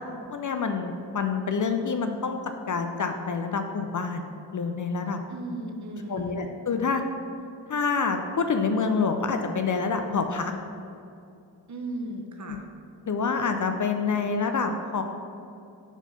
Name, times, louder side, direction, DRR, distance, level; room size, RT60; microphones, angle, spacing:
voice 1, 0.3-2.4 2.7-4.3 4.5-5.2 6.1-7.0 7.7-10.6 12.5-12.6 13.1-15.0, left 5 dB, 40° left, 6 dB, 0.5 m, -27 dB
voice 2, 5.3-6.4 11.7-12.6, right 1 dB, 35° right, 3 dB, 0.9 m, -36 dB
4.6 x 4.3 x 5.6 m, 2.6 s
cardioid pair, 45°, 47 cm